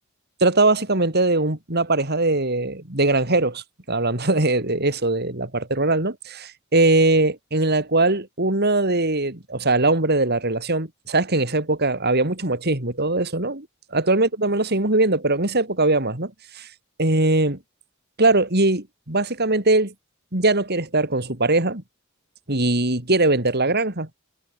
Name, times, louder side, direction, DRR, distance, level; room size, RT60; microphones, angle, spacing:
voice 1, 0.4-13.7 13.9-16.7 17.0-17.6 18.2-19.9 20.3-21.8 22.5-24.1, right 2 dB, 50° right, 4.2 m, -21 dB
head